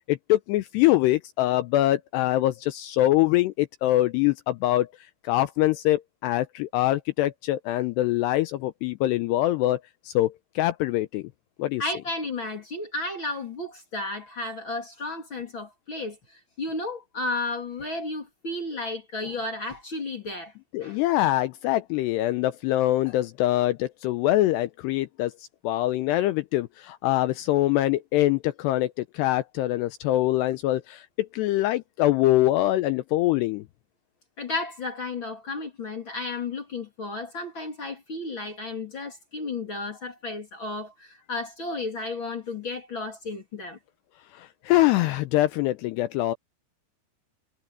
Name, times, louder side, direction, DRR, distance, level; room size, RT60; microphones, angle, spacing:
voice 1, 0.1-4.9 5.2-11.3 11.6-11.9 20.7-33.6 44.3-46.3, left 15 dB, 85° left, 2.5 m, -24 dB
voice 2, 11.8-16.2 16.6-20.5 20.8-21.0 34.4-43.8, left 2 dB, 30° left, 2.7 m, -33 dB
omnidirectional pair, 5.4 m